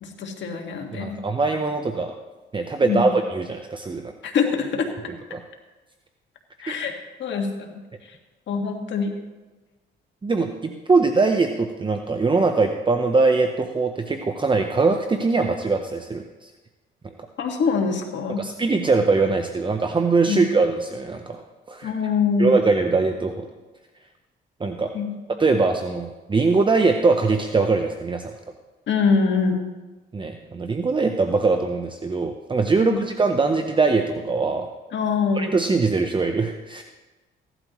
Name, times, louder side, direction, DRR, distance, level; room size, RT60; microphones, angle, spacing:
voice 1, 0.0-1.2 2.8-3.1 4.2-4.9 6.6-6.9 7.2-8.2 8.5-9.1 17.4-18.4 20.3-20.4 21.8-22.6 24.9-25.2 28.9-29.6 32.8-33.0 34.9-35.5, left 5 dB, 65° left, 3 dB, 1.8 m, -24 dB
voice 2, 0.9-2.1 2.5-4.1 5.3-5.4 6.7-6.8 10.2-16.5 18.4-21.4 21.7-21.9 22.4-23.5 24.6-24.9 25.4-28.3 30.1-34.7 35.4-36.8, right 3 dB, 25° right, 5 dB, 0.8 m, -22 dB
16.0 x 12.0 x 3.1 m, 1.2 s
cardioid pair, 90°, 20 cm